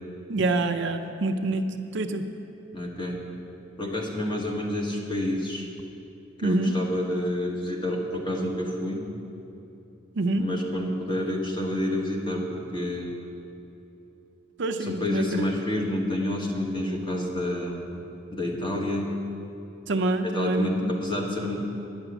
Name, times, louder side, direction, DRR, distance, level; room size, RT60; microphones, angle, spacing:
voice 1, 0.3-2.2 6.4-6.8 10.2-10.5 14.6-15.4 19.9-20.9, right 2 dB, 60° right, 6 dB, 0.6 m, -26 dB
voice 2, 2.7-3.2 3.8-5.7 6.4-9.1 10.4-13.1 14.8-17.8 18.3-19.2 20.2-21.7, left 1 dB, 25° left, -1 dB, 1.5 m, -29 dB
11.0 x 6.2 x 8.9 m, 2.8 s
head